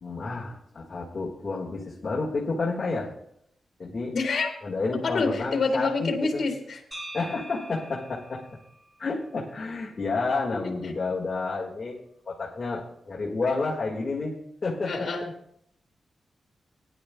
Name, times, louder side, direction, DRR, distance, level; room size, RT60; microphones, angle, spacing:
voice 1, 0.0-3.1 3.8-4.2 4.6-6.4 7.1-8.4 9.0-12.0 12.3-15.1, left 3 dB, 35° left, -4 dB, 1.7 m, -30 dB
voice 2, 4.1-4.5 5.0-6.8 10.8-10.9 14.8-15.3, left 4 dB, 55° left, 1 dB, 1.9 m, -27 dB
sound 1, 6.9-11.0, right 1 dB, 5° right, 2.7 m, -46 dB
19.5 x 10.5 x 2.3 m, 0.72 s
wide cardioid pair, 170°, 0 cm